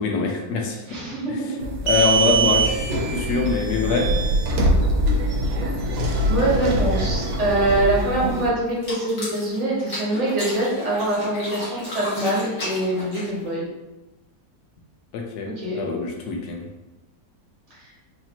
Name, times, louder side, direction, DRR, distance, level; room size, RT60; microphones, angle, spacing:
voice 1, 0.0-0.8 1.9-4.1 15.1-16.6, left 4 dB, 70° left, 1 dB, 1.1 m, -24 dB
voice 2, 0.9-1.4 1.6-2.0 6.3-13.6 15.6-15.8 17.7-17.8, right 1 dB, 45° right, -6 dB, 1.2 m, -24 dB
sound 1, 1.6-8.5, right 2 dB, 85° right, 1.4 m, -22 dB
Zombie Bite, 8.7-13.5, left 1 dB, 55° left, 1.8 m, -34 dB
4.2 x 2.8 x 2.8 m, 1.0 s
omnidirectional pair, 2.0 m